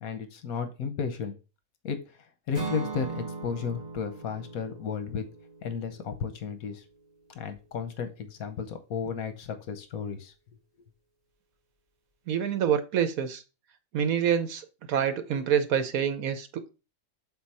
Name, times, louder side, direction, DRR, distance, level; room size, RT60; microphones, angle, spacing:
voice 1, 0.0-1.4 1.8-2.0 2.5-5.3 5.6-6.8 7.3-10.3 10.8-10.9, left 6 dB, 85° left, 1.3 m, -33 dB
Acoustic guitar / Strum, 2.5-6.6, right 4 dB, 25° right, 2.1 m, -39 dB
voice 2, 12.3-13.4 13.9-16.7, right 8 dB, 80° right, 1.3 m, -27 dB
6.8 x 4.0 x 4.1 m
omnidirectional pair, 1.5 m